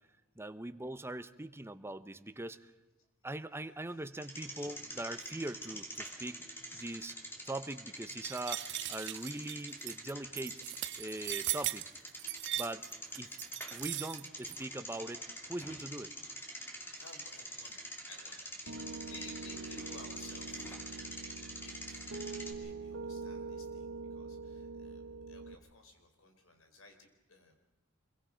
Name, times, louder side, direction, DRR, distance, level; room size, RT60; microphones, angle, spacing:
voice 1, 0.4-2.7 3.2-6.4 6.7-7.2 7.4-10.6 11.0-11.9 12.6-12.9 13.2-13.4 13.7-15.2 15.5-16.1, right 1 dB, 10° right, 11 dB, 0.9 m, -41 dB
voice 2, 3.6-4.1 12.5-12.7 16.8-27.6, left 3 dB, 80° left, 5 dB, 4.2 m, -57 dB
Bicycle, 4.1-22.5, equal, 10° left, 2.9 m, -46 dB
sound 1, 8.2-14.6, right 15 dB, 60° right, 0.6 m, -39 dB
Piano, 18.7-25.5, right 4 dB, 90° right, 1.3 m, -44 dB
26.0 x 23.0 x 5.1 m, 1.2 s
head